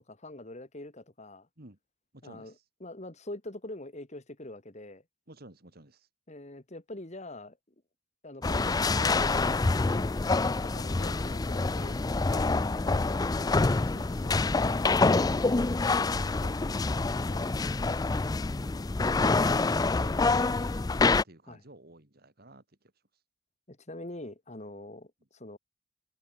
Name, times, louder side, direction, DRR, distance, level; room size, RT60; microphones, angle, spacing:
voice 1, 0.0-1.5 2.2-2.5 2.8-5.0 6.3-7.6 8.2-10.1 10.4-12.0 12.3-12.8 17.3-17.5 21.5-21.6 23.7-25.6, left 1 dB, 35° left, 2.0 m, -44 dB
voice 2, 2.1-2.6 5.3-6.1 15.8-17.0 19.0-22.6, right 1 dB, 50° right, 2.9 m, -52 dB
sound 1, 8.4-21.2, left 3 dB, 20° left, 0.4 m, -26 dB
head